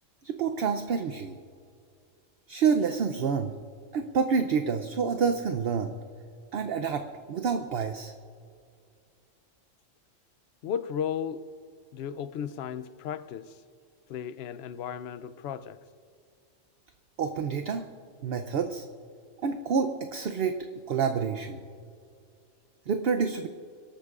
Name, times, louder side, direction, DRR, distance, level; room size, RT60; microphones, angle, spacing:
voice 1, 0.2-1.3 2.5-3.5 3.9-6.0 6.5-8.1 17.2-17.8 18.2-18.9 19.4-20.6 20.9-21.6 22.9-23.5, right 6 dB, 55° right, 0.8 m, -28 dB
voice 2, 10.6-11.5 11.9-13.6 14.1-15.8, left 8 dB, 60° left, 0.8 m, -35 dB
25.5 x 13.0 x 2.5 m
omnidirectional pair, 1.3 m